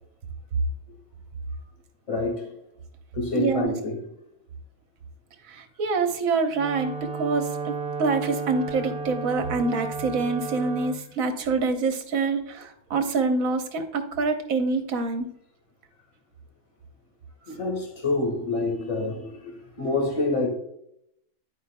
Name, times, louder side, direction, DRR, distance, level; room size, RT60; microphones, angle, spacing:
voice 1, 2.1-2.5 3.1-4.1 17.4-20.5, left 2 dB, 25° left, 1.6 m, -27 dB
voice 2, 3.3-3.7 5.5-15.3, right 4 dB, 70° right, 1.3 m, -26 dB
Wind instrument woodwind instrument, 6.5-11.0, right 4 dB, 50° right, 0.8 m, -33 dB
12.0 x 4.7 x 2.2 m
omnidirectional pair, 1.6 m